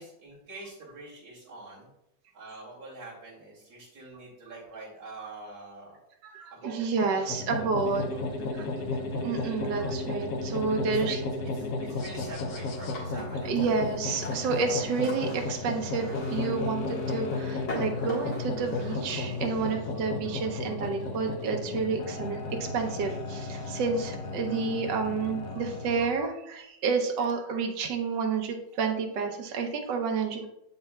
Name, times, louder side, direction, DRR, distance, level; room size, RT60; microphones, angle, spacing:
voice 1, 0.0-1.9 2.3-6.0 6.5-8.9 10.8-11.2 11.4-13.7 19.6-19.7 23.6-23.9 29.6-29.7, right 2 dB, 55° right, -5 dB, 2.8 m, -46 dB
voice 2, 6.2-8.0 9.2-11.2 13.4-30.5, right 5 dB, 75° right, 3 dB, 1.4 m, -30 dB
sound 1, 7.3-26.1, left 3 dB, 60° left, 1.1 m, -34 dB
sound 2, 12.0-18.9, left 1 dB, 75° left, 2.2 m, -41 dB
7.6 x 6.7 x 2.3 m, 0.84 s
omnidirectional pair, 1.9 m